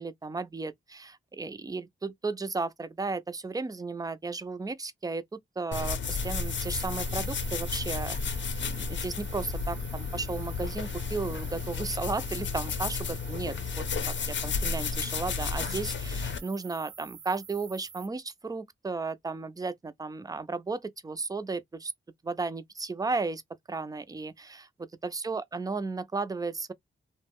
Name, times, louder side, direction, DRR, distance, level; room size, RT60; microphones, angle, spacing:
voice 1, 0.0-21.9 22.2-23.4 23.7-26.7, right 3 dB, 15° right, 0.4 m, -34 dB
sound 1, 5.7-16.4, left 5 dB, 60° left, 0.6 m, -32 dB
sound 2, 6.0-18.1, right 7 dB, 75° right, 0.7 m, -47 dB
2.2 x 2.1 x 3.4 m
cardioid pair, 65°, 21 cm